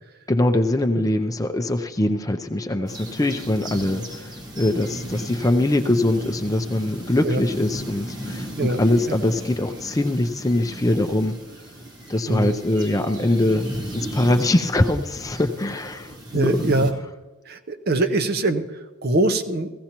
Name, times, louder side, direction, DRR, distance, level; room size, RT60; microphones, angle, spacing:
voice 1, 0.3-11.4 12.1-13.6 13.9-16.5, left 1 dB, 15° left, 7 dB, 0.5 m, -22 dB
sound 1, 2.9-16.9, equal, 20° right, 1.0 m, -35 dB
voice 2, 16.3-16.9 17.5-19.7, right 2 dB, 50° right, 10 dB, 0.7 m, -23 dB
16.5 x 15.5 x 3.0 m, 1.2 s
head